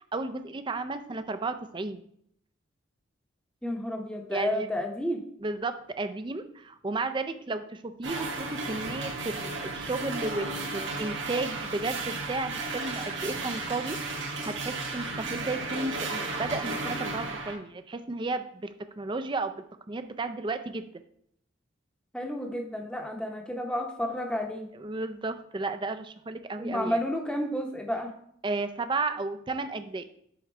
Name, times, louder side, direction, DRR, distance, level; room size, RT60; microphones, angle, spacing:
voice 1, 0.1-2.0 4.3-4.7 5.4-14.0 14.2-20.9 24.7-27.0 28.4-30.0, right 3 dB, 25° right, 9 dB, 0.4 m, -33 dB
voice 2, 3.6-5.2 22.1-24.7 26.6-28.1, equal, 5° left, 2 dB, 0.8 m, -31 dB
sound 1, 8.0-17.6, right 3 dB, 65° right, 1.2 m, -34 dB
7.8 x 3.9 x 4.4 m, 0.70 s
head